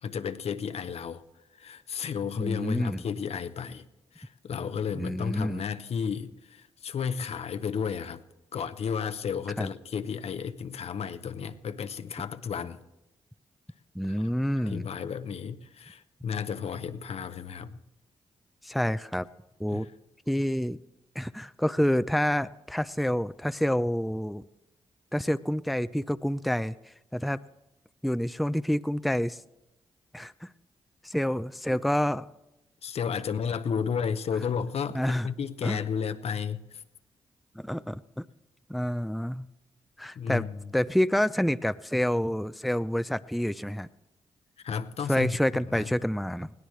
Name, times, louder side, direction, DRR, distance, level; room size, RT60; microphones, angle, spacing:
voice 1, 0.0-1.2 1.5-3.8 4.1-8.2 8.5-12.8 14.0-17.8 19.7-19.9 32.8-36.8 40.1-40.7 44.6-45.4 45.7-45.9, left 6 dB, 65° left, 0.8 m, -33 dB
voice 2, 2.4-3.0 4.9-5.7 9.6-9.7 13.9-14.9 18.6-19.3 19.6-19.9 20.3-20.8 21.2-24.4 25.1-27.4 28.0-29.4 30.1-30.5 31.0-32.3 34.9-35.3 35.6-35.8 37.5-38.3 38.7-39.5 40.0-40.5 40.7-43.9 45.1-46.5, equal, ahead, 0.5 m, -28 dB
20.5 x 17.0 x 3.2 m
supercardioid pair, 50°, 11 cm